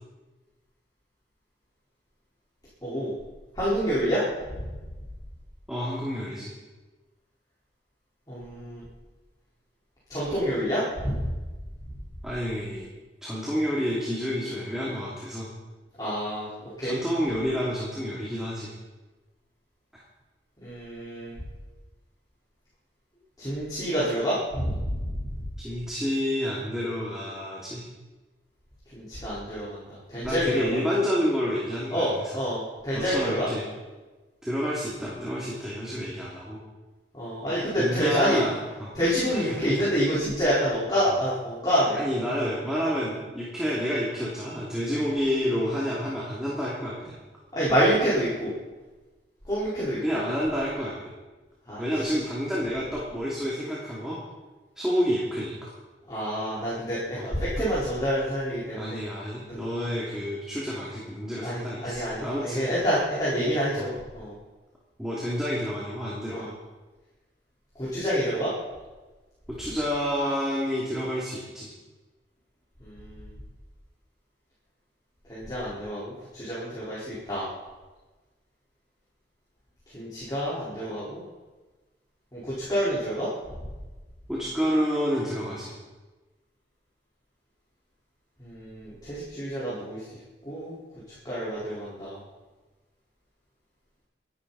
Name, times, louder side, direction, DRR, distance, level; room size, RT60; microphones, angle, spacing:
voice 1, 2.8-3.1 3.6-4.2 4.5-4.6 8.3-8.8 10.1-11.3 16.0-16.5 16.8-16.9 20.6-21.4 23.4-24.9 28.9-30.8 31.9-33.5 37.2-38.4 38.9-42.0 47.5-48.5 49.5-50.2 51.7-51.8 56.1-59.0 59.5-59.6 61.4-64.3 66.3-66.4 67.8-68.5 72.8-73.1 75.3-77.5 79.9-81.2 82.3-83.3 88.4-90.0 90.4-90.8 91.2-92.2, equal, 25° left, -10 dB, 4.6 m, -27 dB
voice 2, 5.7-6.5 12.2-12.9 13.2-15.5 16.8-18.7 19.9-20.0 25.6-27.9 30.2-32.4 32.9-33.6 34.4-36.6 37.8-38.9 39.3-39.7 41.9-47.1 50.0-51.1 51.8-54.2 54.8-55.7 57.1-57.3 58.8-62.7 63.8-63.9 65.0-66.5 69.6-71.7 84.3-85.7, equal, 5° right, -6 dB, 2.8 m, -29 dB
26.5 x 11.0 x 4.3 m, 1.2 s
head